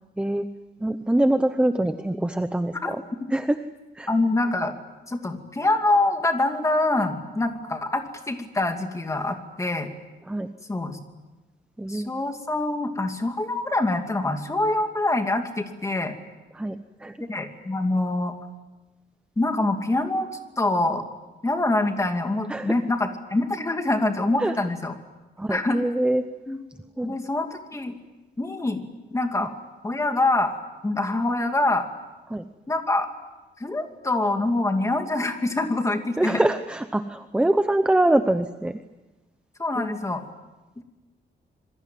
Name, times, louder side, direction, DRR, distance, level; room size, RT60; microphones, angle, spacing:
voice 1, 0.8-3.0 3.3-3.6 3.9-4.1 10.3-10.5 11.8-12.2 16.5-17.2 22.5-22.8 24.4-24.6 25.4-26.2 27.0-27.2 32.3-32.5 36.2-38.8 39.8-40.0, right 1 dB, 5° right, 9 dB, 0.8 m, -24 dB
voice 2, 4.1-4.8 5.1-9.9 10.7-11.0 11.9-16.2 17.3-18.3 19.4-20.3 20.6-21.0 21.4-24.9 25.5-25.8 26.5-26.6 27.0-27.9 28.4-28.8 29.1-29.5 29.8-30.5 30.8-31.9 32.7-33.1 33.6-36.4 39.6-40.2 40.8-40.9, left 2 dB, 15° left, 5 dB, 2.6 m, -25 dB
27.0 x 22.5 x 9.3 m, 1.1 s
wide cardioid pair, 165°, 19 cm